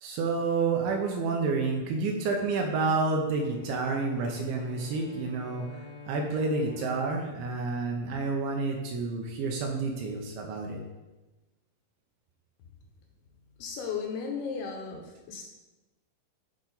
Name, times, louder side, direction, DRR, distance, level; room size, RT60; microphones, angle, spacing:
voice 1, 0.0-10.8, right 3 dB, 75° right, 1 dB, 2.8 m, -29 dB
Bowed string instrument, 3.4-8.8, left 5 dB, 45° left, 0.9 m, -48 dB
voice 2, 13.6-15.4, left 6 dB, 80° left, 1 dB, 2.7 m, -35 dB
11.5 x 4.5 x 3.9 m, 1.1 s
omnidirectional pair, 5.7 m